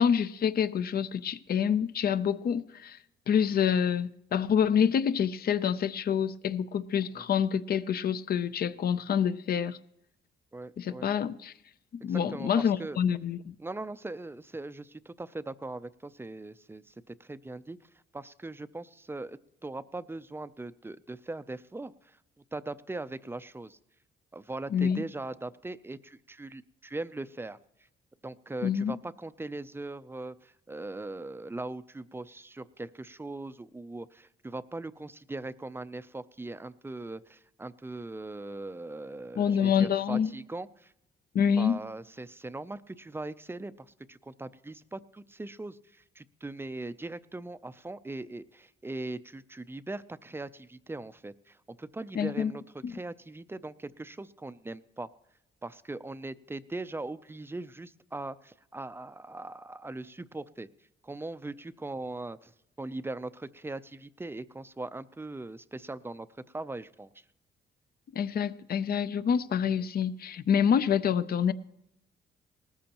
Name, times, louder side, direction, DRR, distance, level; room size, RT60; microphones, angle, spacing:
voice 1, 0.0-3.0 3.3-9.8 10.8-11.5 11.9-13.5 24.7-25.0 28.6-29.0 39.4-40.3 41.3-41.8 52.2-52.5 52.8-53.0 68.1-71.5, left 8 dB, 50° left, 0.6 m, -27 dB
voice 2, 10.5-11.1 12.1-13.0 13.6-17.8 18.1-22.2 22.5-23.8 24.3-27.6 28.2-40.9 41.6-55.1 55.6-60.7 61.0-62.5 62.8-66.3 66.5-67.1, right 2 dB, 10° right, 0.5 m, -40 dB
19.0 x 14.0 x 3.0 m
cardioid pair, 90°, 20 cm